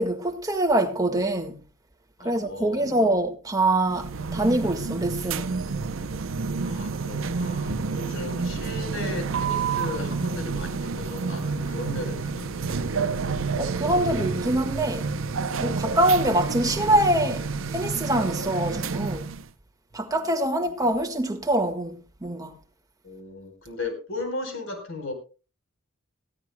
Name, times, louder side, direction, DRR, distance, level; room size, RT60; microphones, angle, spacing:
voice 1, 0.0-1.6 2.2-5.5 13.6-15.1 15.6-17.4 17.7-19.3 19.9-22.5, right 1 dB, 15° right, 1.8 m, -24 dB
voice 2, 2.2-3.0 6.6-13.2 20.0-20.1 23.0-25.1, left 2 dB, 65° left, 4.4 m, -36 dB
sound 1, 3.9-19.5, right 4 dB, 65° right, 0.7 m, -29 dB
19.0 x 16.0 x 2.3 m
head